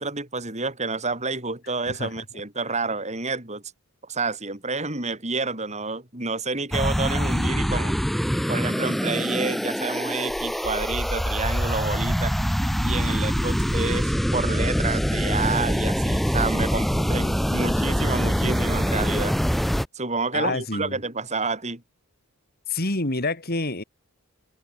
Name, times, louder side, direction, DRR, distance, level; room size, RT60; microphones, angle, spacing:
voice 1, 0.0-3.6 4.0-8.0 8.5-12.3 12.8-19.4 19.9-21.8, right 3 dB, 30° right, 5.5 m, -29 dB
sound 1, 6.7-19.9, equal, ahead, 0.5 m, -24 dB
voice 2, 20.3-21.0 22.7-23.8, left 2 dB, 45° left, 3.0 m, -27 dB
head